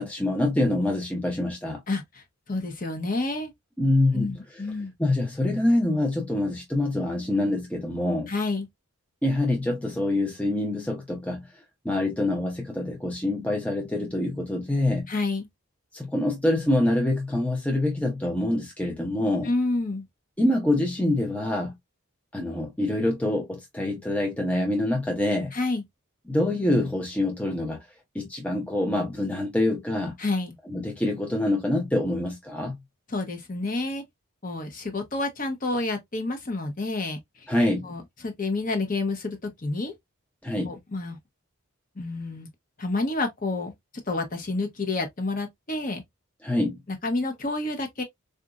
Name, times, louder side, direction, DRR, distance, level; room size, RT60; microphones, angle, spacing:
voice 1, 0.0-1.8 3.8-4.3 5.0-8.3 9.2-15.1 15.9-19.5 20.4-21.8 22.3-25.5 26.3-27.9 28.1-30.2 30.7-32.8 37.5-37.9 40.4-40.8 46.4-46.8, left 1 dB, 5° left, 0.6 m, -25 dB
voice 2, 1.9-3.5 4.1-4.9 8.3-8.7 15.1-15.5 19.4-20.1 25.5-25.8 30.2-30.6 33.1-34.0 34.4-37.5 37.8-39.9 40.7-41.2 42.0-42.5 42.8-43.7 44.1-46.0 47.0-48.0, left 2 dB, 35° left, 0.8 m, -29 dB
3.9 x 2.4 x 2.3 m
head